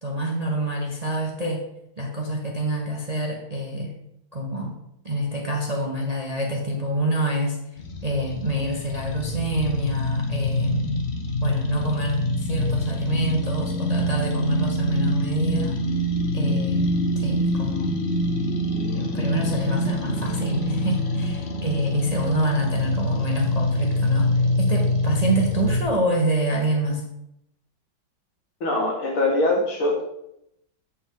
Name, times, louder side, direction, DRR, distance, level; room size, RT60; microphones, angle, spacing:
voice 1, 0.0-1.6 2.0-4.0 4.3-4.8 5.0-7.6 8.0-11.0 11.4-15.8 16.3-18.0 18.9-27.0, right 1 dB, 25° right, 0 dB, 0.8 m, -26 dB
sound 1, 7.8-25.8, left 1 dB, 45° left, 0.8 m, -25 dB
voice 2, 28.6-30.0, left 2 dB, 85° left, 0 dB, 2.7 m, -22 dB
8.3 x 7.1 x 3.9 m, 0.81 s
omnidirectional pair, 2.3 m